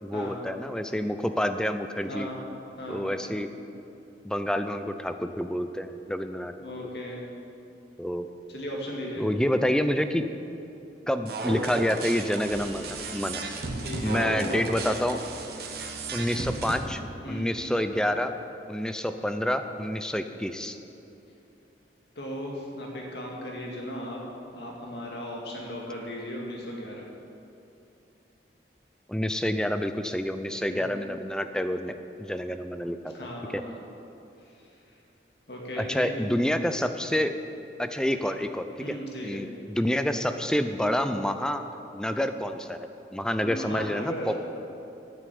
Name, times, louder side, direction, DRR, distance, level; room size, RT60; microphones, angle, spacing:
voice 1, 0.0-2.3 2.9-3.5 4.2-6.5 8.0-8.3 9.2-10.2 11.1-13.4 14.0-15.2 16.1-17.0 17.3-18.3 18.7-20.8 29.1-33.1 33.5-33.6 35.8-37.4 37.8-39.0 39.2-41.6 41.9-42.8 43.1-44.3, equal, 5° left, 8 dB, 0.4 m, -28 dB
voice 2, 2.1-2.4 2.8-3.1 6.6-7.2 8.5-9.3 13.8-14.7 15.8-16.0 16.3-16.5 17.2-17.5 22.2-27.1 30.7-30.8 33.1-33.7 34.4-34.5 35.5-36.3 38.8-39.4 43.4-44.3, equal, 65° left, -2 dB, 2.3 m, -37 dB
sound 1, 11.3-16.8, right 2 dB, 60° right, 1.2 m, -34 dB
sound 2, 12.4-18.4 20.9-21.0, right 1 dB, 35° right, 1.4 m, -46 dB
9.3 x 8.0 x 8.5 m, 2.8 s
head